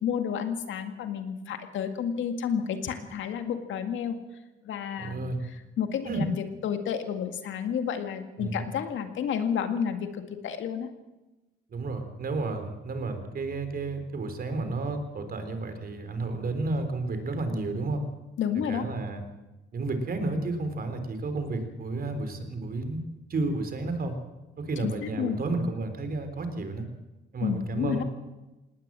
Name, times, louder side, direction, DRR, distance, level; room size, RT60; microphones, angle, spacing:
voice 1, 0.0-4.2 4.6-5.2 5.8-10.9 18.4-18.8 24.8-25.4 27.4-28.0, left 8 dB, 75° left, 8 dB, 2.0 m, -30 dB
voice 2, 5.0-5.4 6.0-6.3 8.4-8.6 11.7-18.0 18.7-19.2 19.7-23.0 23.3-24.2 24.6-26.9 27.3-28.0, right 3 dB, 50° right, 8 dB, 3.7 m, -31 dB
19.0 x 18.5 x 7.6 m, 1.1 s
cardioid pair, 90°, 20 cm